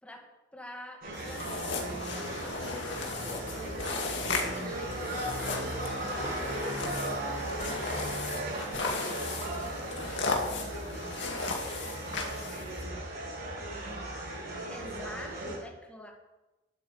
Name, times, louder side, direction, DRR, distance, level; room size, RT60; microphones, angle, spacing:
voice 1, 0.0-3.8 4.3-6.4 8.7-9.0 14.7-16.1, equal, 5° left, 1 dB, 2.1 m, -47 dB
sound 1, 1.0-15.6, right 1 dB, 55° right, 5.9 m, -36 dB
sound 2, 1.1-12.8, left 3 dB, 65° left, 2.4 m, -36 dB
voice 2, 4.1-5.2 7.1-10.4 10.8-13.1, equal, 35° left, -3 dB, 4.1 m, -51 dB
12.0 x 8.3 x 8.6 m, 1.0 s
head